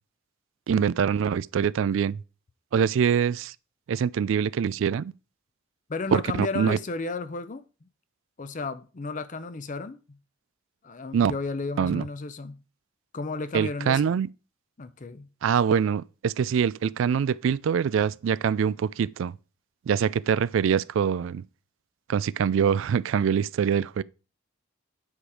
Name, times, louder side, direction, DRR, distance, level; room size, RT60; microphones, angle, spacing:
voice 1, 0.7-2.2 2.7-3.5 3.9-5.1 6.1-6.8 11.1-11.3 11.8-12.0 13.5-14.3 15.4-19.3 19.9-21.4 22.1-24.0, right 7 dB, 65° right, 0.3 m, -24 dB
voice 2, 5.9-7.9 8.4-10.2 10.8-12.6 13.1-14.0 14.8-15.3, left 3 dB, 35° left, 0.5 m, -33 dB
8.7 x 5.0 x 4.8 m
head